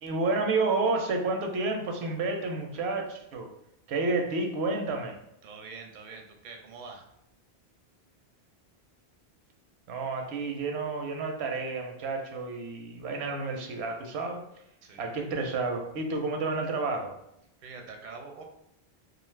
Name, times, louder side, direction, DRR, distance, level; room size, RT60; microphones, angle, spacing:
voice 1, 0.0-3.5 3.9-5.2 9.9-14.4 15.0-17.1, right 3 dB, 85° right, 3 dB, 0.8 m, -30 dB
voice 2, 5.4-7.0 14.8-15.1 17.6-18.4, right 4 dB, 55° right, 3 dB, 0.6 m, -45 dB
2.5 x 2.4 x 3.1 m, 0.79 s
omnidirectional pair, 1.1 m